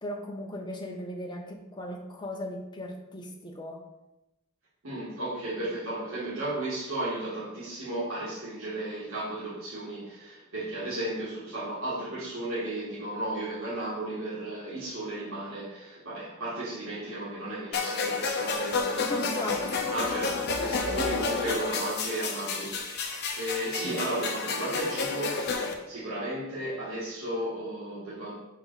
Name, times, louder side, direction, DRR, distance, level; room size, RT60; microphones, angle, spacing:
voice 1, 0.0-3.8 19.0-19.9 20.6-20.8 23.0-23.3, left 1 dB, 20° left, 1 dB, 0.9 m, -38 dB
voice 2, 4.8-19.5 19.9-28.3, right 1 dB, 90° right, -10 dB, 2.1 m, -34 dB
sound 1, 17.7-25.7, left 4 dB, 55° left, 0.8 m, -30 dB
6.0 x 4.7 x 4.1 m, 0.95 s
head